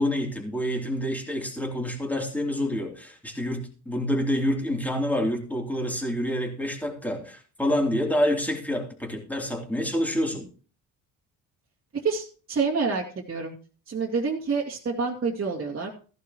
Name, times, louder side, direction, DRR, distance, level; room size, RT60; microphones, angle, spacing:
voice 1, 0.0-10.5, left 1 dB, 5° left, 0 dB, 3.2 m, -27 dB
voice 2, 11.9-13.5 13.9-15.9, right 4 dB, 35° right, -3 dB, 2.5 m, -28 dB
15.0 x 11.5 x 3.1 m, 0.39 s
cardioid pair, 110°, 37 cm